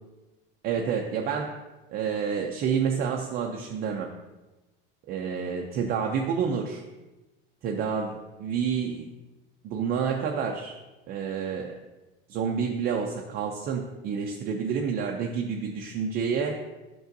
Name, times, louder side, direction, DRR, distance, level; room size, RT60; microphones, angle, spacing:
voice 1, 0.6-1.6 1.9-4.1 5.1-6.8 7.6-9.1 9.6-10.7 11.1-11.7 12.3-16.6, right 6 dB, 35° right, 1 dB, 0.5 m, -29 dB
8.9 x 6.1 x 2.6 m, 1.1 s
supercardioid pair, 145°, 29 cm